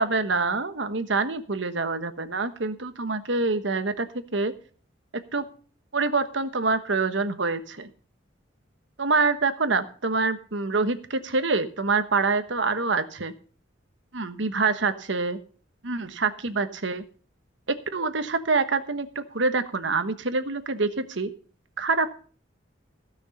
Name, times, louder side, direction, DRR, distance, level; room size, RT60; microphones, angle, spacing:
voice 1, 0.0-4.1 4.3-4.5 5.3-5.4 5.9-7.9 9.0-13.3 14.1-15.4 15.8-17.0 17.7-21.3 21.8-22.1, right 3 dB, 70° right, 10 dB, 1.2 m, -26 dB
15.5 x 6.4 x 6.6 m, 0.42 s
head